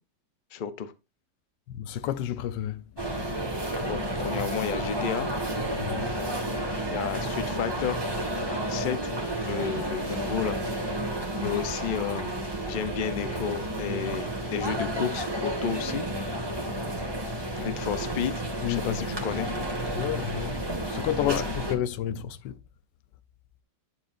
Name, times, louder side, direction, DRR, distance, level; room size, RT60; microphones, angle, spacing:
voice 1, 0.5-0.9 3.9-5.3 6.9-8.0 8.7-9.1 9.4-12.3 12.7-16.5 17.6-19.5 21.2-21.4, left 8 dB, 50° left, 0.6 m, -32 dB
voice 2, 1.7-2.8 5.7-6.2 11.4-11.5 18.6-19.0 19.9-20.6 20.9-22.6, left 11 dB, 75° left, 1.3 m, -30 dB
sound 1, 3.0-21.7, right 1 dB, 15° right, 1.7 m, -31 dB
10.5 x 7.2 x 2.6 m
omnidirectional pair, 2.0 m